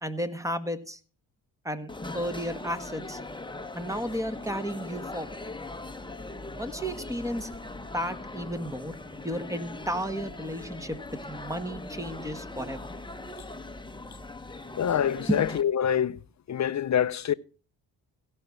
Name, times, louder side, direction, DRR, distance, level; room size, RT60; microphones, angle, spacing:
voice 1, 0.0-1.0 1.6-3.2 3.7-5.4 6.6-7.5 7.9-9.0 9.2-12.9 15.3-15.4, equal, 5° right, 1.6 m, -33 dB
sound 1, 1.9-15.6, left 2 dB, 10° left, 1.2 m, -40 dB
voice 2, 14.8-16.2 16.5-17.3, left 9 dB, 35° left, 0.7 m, -25 dB
16.0 x 5.6 x 6.1 m
hypercardioid pair, 45°, 49 cm